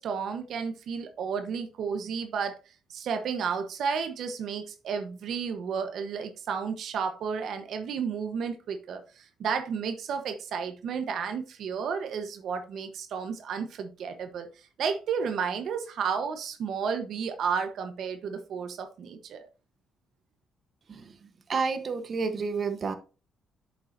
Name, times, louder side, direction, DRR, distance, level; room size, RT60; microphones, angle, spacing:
voice 1, 0.0-19.5, right 6 dB, 70° right, 1.1 m, -32 dB
voice 2, 21.5-22.9, right 4 dB, 45° right, 1.0 m, -29 dB
8.6 x 6.9 x 2.7 m
cardioid pair, 90°, 0 cm